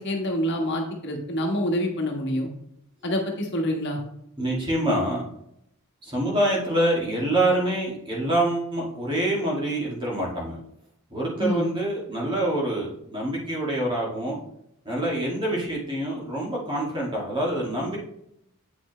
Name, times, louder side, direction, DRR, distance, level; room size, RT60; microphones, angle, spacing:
voice 1, 0.0-2.5 3.0-4.0 11.4-11.7, equal, 50° left, 1 dB, 1.4 m, -26 dB
voice 2, 4.4-5.2 6.0-10.6 11.1-14.4 14.9-18.0, right 1 dB, 25° right, -4 dB, 2.2 m, -26 dB
8.5 x 6.0 x 3.2 m, 0.75 s
head